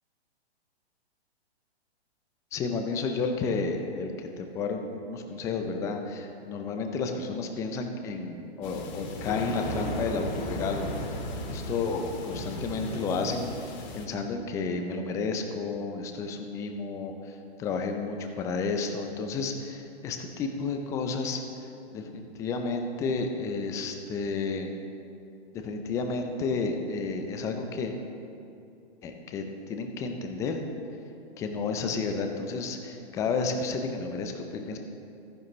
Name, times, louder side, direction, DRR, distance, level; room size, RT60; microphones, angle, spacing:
voice 1, 2.5-10.9 11.5-24.7 25.5-27.9 29.0-30.6 31.4-34.8, left 4 dB, 10° left, 5 dB, 0.4 m, -31 dB
sound 1, 8.6-14.1, left 1 dB, 45° left, 1.9 m, -36 dB
14.0 x 10.5 x 3.1 m, 2.6 s
hypercardioid pair, 135°, 33 cm